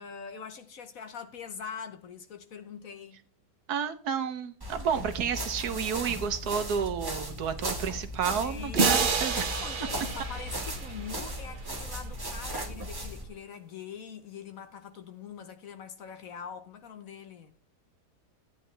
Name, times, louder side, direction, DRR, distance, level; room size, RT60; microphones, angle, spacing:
voice 1, 0.0-3.2 8.4-17.5, left 6 dB, 60° left, 1.2 m, -43 dB
voice 2, 3.7-9.5, right 7 dB, 65° right, 1.3 m, -31 dB
sound 1, 4.6-13.2, equal, 15° right, 1.3 m, -36 dB
sound 2, 8.8-11.6, right 5 dB, 40° right, 0.8 m, -29 dB
13.0 x 9.0 x 3.3 m
omnidirectional pair, 1.9 m